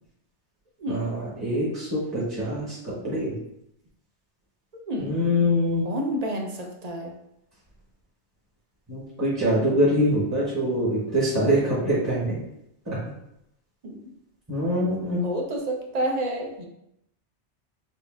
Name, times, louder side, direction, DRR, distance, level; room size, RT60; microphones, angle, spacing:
voice 1, 0.9-3.3 5.0-5.8 8.9-12.4 12.9-13.0 14.5-15.2, equal, 15° right, -7 dB, 0.8 m, -24 dB
voice 2, 4.9-5.2 5.8-7.1 13.8-14.0 15.2-16.7, right 1 dB, 45° right, 1 dB, 0.6 m, -29 dB
5.4 x 2.5 x 2.4 m, 0.82 s
omnidirectional pair, 1.2 m